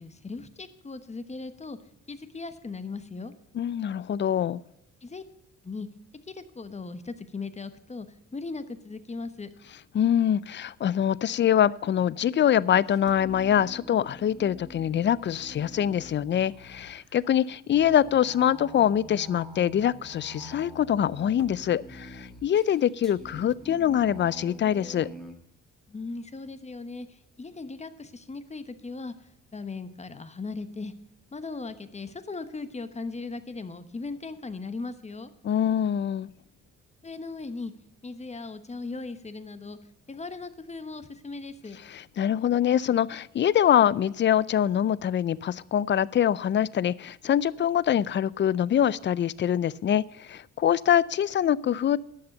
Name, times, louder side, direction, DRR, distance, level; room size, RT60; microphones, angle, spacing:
voice 1, 0.0-1.8 2.1-3.3 5.0-5.2 5.6-5.9 6.3-8.1 8.3-9.5 25.9-29.1 29.5-30.9 31.3-35.3 37.0-37.7 38.0-39.8 40.1-41.8, left 3 dB, 20° left, 11 dB, 1.1 m, -38 dB
voice 2, 3.5-4.6 9.9-25.1 35.4-36.3 41.8-52.0, left 10 dB, 40° left, 21 dB, 0.4 m, -24 dB
sound 1, 12.1-25.3, right 1 dB, ahead, 1.8 m, -46 dB
11.5 x 6.8 x 6.6 m, 0.82 s
cardioid pair, 90°, 30 cm